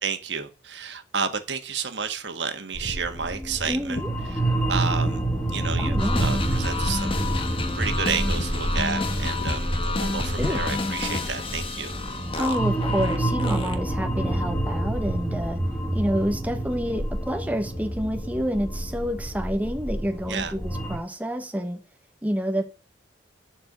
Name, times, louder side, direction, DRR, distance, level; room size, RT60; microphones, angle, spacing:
voice 1, 0.0-4.0 4.3-4.4 4.7-5.2 5.5-7.2 7.7-11.9 20.3-20.5, right 5 dB, 70° right, 1.6 m, -31 dB
sound 1, 2.7-21.0, right 1 dB, 10° left, 2.0 m, -28 dB
Walk footsteps, 2.8-3.1 3.9-4.2 5.0-5.3 5.6-7.0 7.3-7.5 7.9-8.1 8.4-8.6 8.9-9.1 9.4-9.6 10.4-11.1, left 1 dB, 55° left, 1.1 m, -36 dB
voice 2, 3.7-4.1 5.8-6.3 10.4-10.6 12.4-15.6 15.9-21.8 22.2-22.6, equal, 10° right, 1.2 m, -28 dB
sound 2, 6.0-14.0, left 2 dB, 30° left, 1.4 m, -30 dB
11.5 x 4.6 x 6.7 m
head